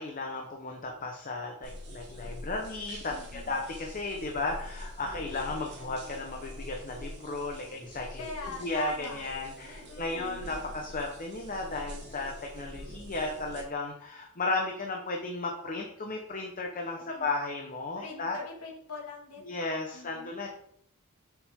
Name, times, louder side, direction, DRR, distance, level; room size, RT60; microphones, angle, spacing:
voice 1, 0.0-8.2 8.6-18.4 19.4-20.5, left 3 dB, 40° left, 1 dB, 0.9 m, -34 dB
sound 1, 1.6-13.6, equal, 50° right, 1.9 m, -45 dB
voice 2, 3.1-3.6 8.2-9.3 9.6-10.5 16.8-17.3 18.0-19.5 19.9-20.3, left 4 dB, 85° left, -2 dB, 2.2 m, -44 dB
7.1 x 6.3 x 3.6 m, 0.69 s
head